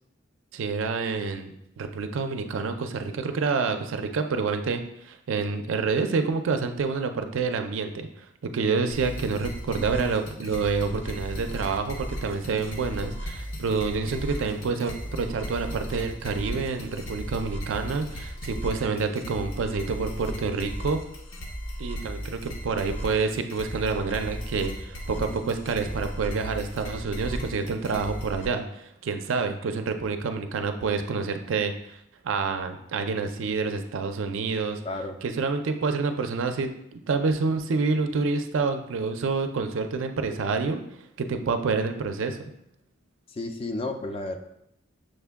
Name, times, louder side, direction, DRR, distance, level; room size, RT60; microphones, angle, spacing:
voice 1, 0.5-8.3 8.5-21.0 21.8-32.0 32.2-34.8 35.2-40.8 41.2-42.5, right 4 dB, 75° right, 7 dB, 0.4 m, -28 dB
sound 1, 8.9-28.5, equal, 70° left, 0.7 m, -36 dB
voice 2, 34.8-35.2 43.3-44.4, left 2 dB, 30° left, 6 dB, 0.3 m, -32 dB
6.4 x 2.2 x 3.4 m, 0.79 s
head